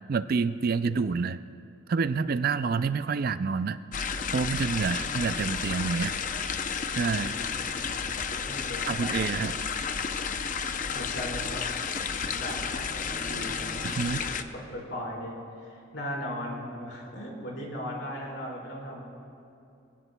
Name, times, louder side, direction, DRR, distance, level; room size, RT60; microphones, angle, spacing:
voice 1, 0.1-1.4 1.9-3.8 4.3-6.2 7.0-7.3 8.9-9.7 13.8-14.2, right 5 dB, 50° right, 13 dB, 0.4 m, -28 dB
sound 1, 3.9-14.4, left 6 dB, 40° left, 0.6 m, -32 dB
voice 2, 7.0-9.1 10.7-11.6 12.2-19.0, equal, 60° left, -4 dB, 4.2 m, -38 dB
Bowed string instrument, 10.5-14.4, equal, 5° right, 4.3 m, -50 dB
24.5 x 17.5 x 2.2 m, 2.5 s
head